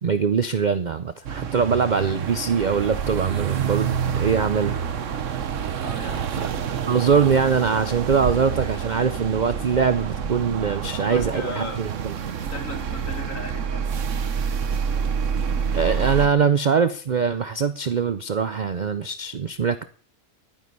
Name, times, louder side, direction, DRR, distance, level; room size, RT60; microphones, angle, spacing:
voice 1, 0.0-4.8 6.3-6.5 6.9-12.1 15.7-19.8, right 6 dB, 85° right, 13 dB, 0.4 m, -22 dB
sound 1, 1.2-16.3, right 7 dB, 55° right, 1.2 m, -27 dB
voice 2, 5.8-6.3 8.6-8.7 10.8-11.8 12.5-14.3, left 2 dB, 55° left, 4 dB, 2.6 m, -36 dB
11.5 x 9.4 x 5.4 m, 0.43 s
omnidirectional pair, 1.6 m